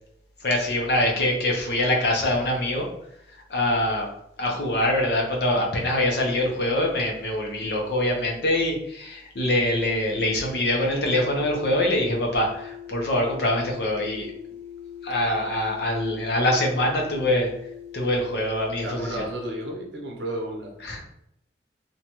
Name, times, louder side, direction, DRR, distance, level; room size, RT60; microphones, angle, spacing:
voice 1, 0.4-2.9 3.5-4.1 4.4-14.3 15.0-17.5 17.9-19.2 20.8-21.0, left 1 dB, 70° left, 0 dB, 0.7 m, -24 dB
sound 1, 10.9-19.2, left 9 dB, 20° left, 0.4 m, -42 dB
voice 2, 18.8-20.8, right 1 dB, 85° right, -1 dB, 0.7 m, -32 dB
2.7 x 2.2 x 2.9 m, 0.77 s
head